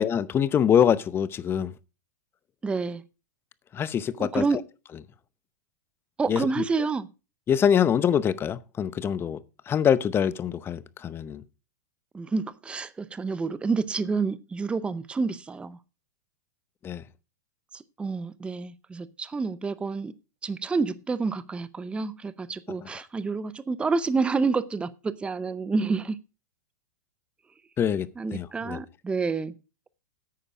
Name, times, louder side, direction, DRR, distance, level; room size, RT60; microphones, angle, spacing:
voice 1, 0.0-1.7 3.7-4.4 6.3-6.4 7.5-9.4 9.7-11.4 16.8-17.0 27.8-28.8, left 8 dB, 25° left, 0.7 m, -24 dB
voice 2, 2.6-3.0 4.2-4.6 6.2-7.1 12.1-15.8 17.7-20.1 20.4-26.2 28.2-29.5, right 4 dB, 10° right, 0.5 m, -28 dB
10.0 x 8.8 x 4.9 m
hypercardioid pair, 115°, 10 cm